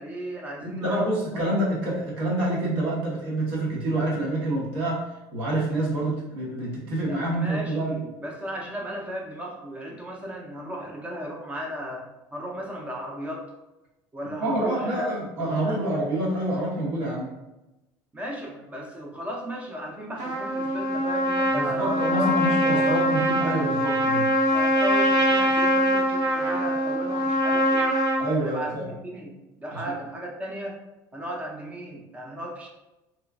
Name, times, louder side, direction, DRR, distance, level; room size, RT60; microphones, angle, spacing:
voice 1, 0.0-1.2 7.1-13.5 14.1-15.9 18.1-23.0 24.5-27.9 28.4-30.8 31.1-32.7, equal, 15° right, -1 dB, 0.5 m, -36 dB
voice 2, 0.6-8.0 14.4-17.3 21.5-24.3 28.2-28.9 29.7-29.9, right 1 dB, 80° right, -4 dB, 1.1 m, -27 dB
Trumpet, 20.2-28.2, equal, 60° right, 0.6 m, -23 dB
3.0 x 2.4 x 2.3 m, 0.99 s
cardioid pair, 135°, 8 cm